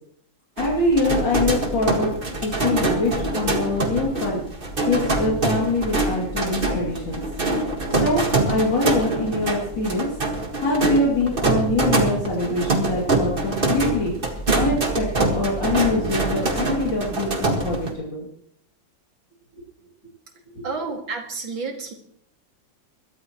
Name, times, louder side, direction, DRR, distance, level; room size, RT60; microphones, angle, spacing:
voice 1, 0.6-2.1 2.4-4.4 4.8-7.2 7.9-10.1 10.6-14.1 14.5-18.3 20.5-20.6, left 2 dB, 70° left, -4 dB, 3.3 m, -24 dB
sound 1, 0.6-17.9, right 2 dB, 30° right, 1.7 m, -24 dB
voice 2, 20.6-21.9, right 4 dB, 85° right, 3 dB, 2.8 m, -30 dB
21.5 x 13.0 x 3.0 m, 0.66 s
omnidirectional pair, 2.1 m